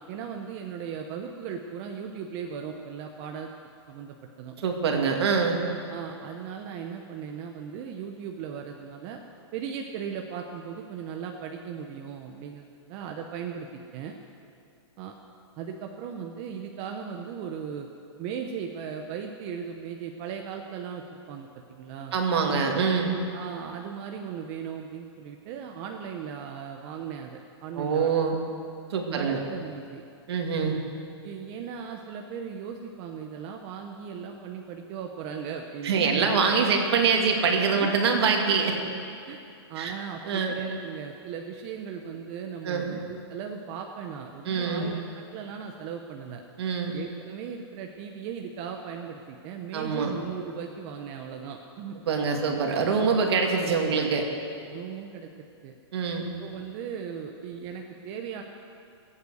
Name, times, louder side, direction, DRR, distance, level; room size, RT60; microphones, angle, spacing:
voice 1, 0.0-3.5 3.9-4.5 5.9-9.2 9.5-13.7 13.9-14.1 15.0-15.1 15.6-17.9 18.2-22.1 23.3-28.2 29.1-30.0 31.2-36.2 37.8-37.9 39.3-39.4 39.7-46.4 46.9-52.0 53.5-53.6 54.7-55.7 56.2-58.4, right 7 dB, 30° right, 3 dB, 0.8 m, -37 dB
voice 2, 4.6-5.6 22.1-23.1 27.8-28.4 28.9-29.4 30.3-30.8 35.8-38.8 39.8-39.9 40.2-40.5 42.6-43.0 44.5-44.9 46.6-47.0 49.7-50.1 52.1-54.3 55.9-56.2, right 5 dB, 65° right, 2 dB, 2.3 m, -24 dB
20.5 x 8.5 x 6.4 m, 2.5 s
hypercardioid pair, 160°, 15 cm